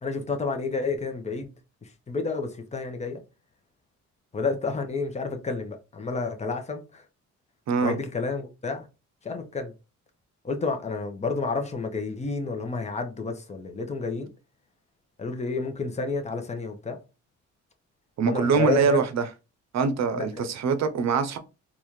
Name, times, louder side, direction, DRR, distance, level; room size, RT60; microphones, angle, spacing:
voice 1, 0.0-1.5 2.1-3.2 4.3-7.0 7.8-8.9 9.2-9.7 10.4-14.3 15.2-17.0 18.3-19.0 20.1-20.5, left 4 dB, 20° left, 0.8 m, -30 dB
voice 2, 7.7-8.0 18.2-19.3 19.7-21.4, right 5 dB, 60° right, 0.7 m, -24 dB
3.9 x 2.4 x 3.1 m
cardioid pair, 90°, 30 cm